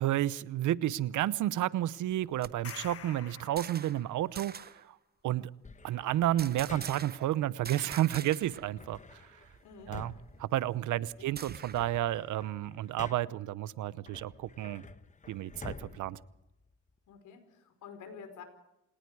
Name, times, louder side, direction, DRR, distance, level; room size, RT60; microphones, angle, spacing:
voice 1, 0.0-4.9 5.2-5.5 5.8-9.2 9.9-10.1 10.4-14.8 15.3-16.2, right 13 dB, 80° right, 18 dB, 0.9 m, -31 dB
sound 1, 2.1-4.1 4.3-4.8 6.4-7.3 7.6-8.7 9.0-9.1 9.4-12.0, right 6 dB, 30° right, 0.9 m, -46 dB
sound 2, 2.4-4.4, left 8 dB, 50° left, 1.6 m, -48 dB
sound 3, 5.6-7.3 8.7-11.2 11.6-13.5 14.0-17.1, left 4 dB, 25° left, 1.4 m, -49 dB
voice 2, 9.6-10.0 10.9-11.3 17.1-18.4, left 6 dB, 80° left, 8 dB, 4.8 m, -49 dB
28.5 x 19.0 x 4.8 m, 0.88 s
cardioid pair, 90°, 30 cm